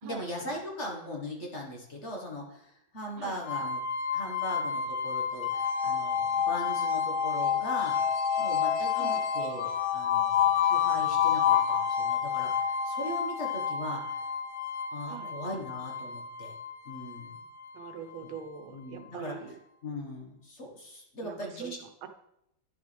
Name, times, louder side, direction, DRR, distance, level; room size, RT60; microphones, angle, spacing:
voice 1, 0.0-3.8 4.1-8.0 8.4-14.2 14.9-16.5 16.8-17.4 18.7-19.4 19.8-21.8, left 1 dB, 40° left, 0 dB, 1.5 m, -39 dB
sound 1, 3.5-18.4, left 7 dB, 65° left, 1.0 m, -29 dB
voice 2, 17.7-19.5 21.2-22.1, right 7 dB, 90° right, 7 dB, 1.7 m, -43 dB
10.5 x 6.4 x 3.3 m, 0.78 s
omnidirectional pair, 2.2 m